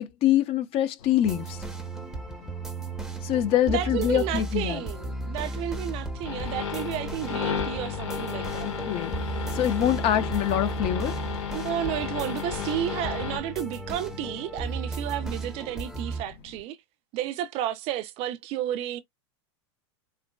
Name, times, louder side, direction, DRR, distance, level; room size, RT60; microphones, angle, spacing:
voice 1, 0.0-1.6 3.2-4.8 8.6-9.2 9.5-11.1, left 11 dB, 40° left, 0.6 m, -25 dB
sound 1, 1.0-16.6, left 5 dB, 65° left, 1.6 m, -48 dB
sound 2, 1.2-16.2, right 2 dB, 5° right, 0.7 m, -35 dB
voice 2, 3.7-8.7 11.5-16.8 17.1-19.0, right 12 dB, 40° right, 0.4 m, -32 dB
sound 3, 6.2-13.4, left 7 dB, 85° left, 1.7 m, -33 dB
3.7 x 2.2 x 2.2 m
hypercardioid pair, 120°, 15 cm